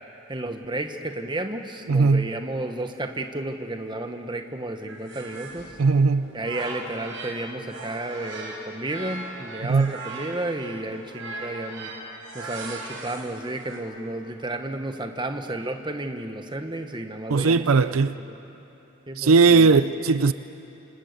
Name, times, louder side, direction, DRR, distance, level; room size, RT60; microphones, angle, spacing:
voice 1, 0.3-5.7 6.3-11.9 12.3-17.8 18.2-18.4 19.1-19.8, right 2 dB, 20° right, 1.3 m, -32 dB
voice 2, 1.9-2.3 5.8-6.3 9.7-9.9 17.3-18.1 19.2-20.3, right 4 dB, 80° right, 0.5 m, -18 dB
sound 1, 4.9-7.4 7.6-13.8, right 2 dB, 60° right, 4.9 m, -38 dB
26.5 x 26.5 x 6.8 m
head